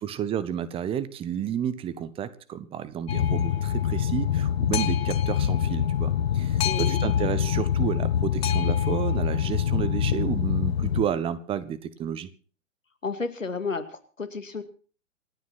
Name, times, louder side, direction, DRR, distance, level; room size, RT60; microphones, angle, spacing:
voice 1, 0.0-12.3, right 9 dB, 15° right, 17 dB, 1.0 m, -31 dB
Boat Water vehicle, 3.1-11.0, left 9 dB, 50° left, 1.2 m, -25 dB
voice 2, 6.6-7.0 13.0-14.6, left 4 dB, 80° left, 11 dB, 2.3 m, -32 dB
27.0 x 9.5 x 4.2 m, 0.40 s
figure-of-eight pair, 120°, 38 cm